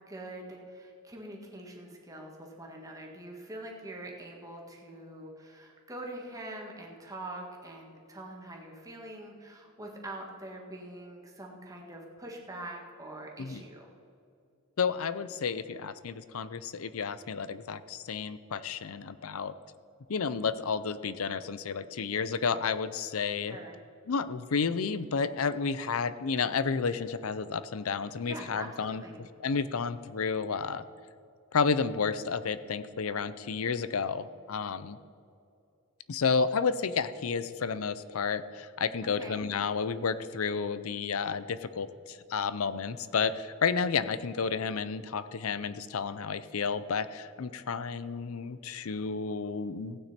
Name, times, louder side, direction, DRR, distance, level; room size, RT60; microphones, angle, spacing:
voice 1, 0.1-13.9 23.5-23.8 28.3-29.2 39.2-39.4, right 1 dB, 15° right, 0 dB, 1.8 m, -44 dB
voice 2, 14.8-19.5 20.1-23.6 24.1-29.0 29.4-30.8 31.5-35.0 36.1-50.0, left 5 dB, 70° left, 14 dB, 0.6 m, -31 dB
16.0 x 8.9 x 4.3 m, 2.5 s
head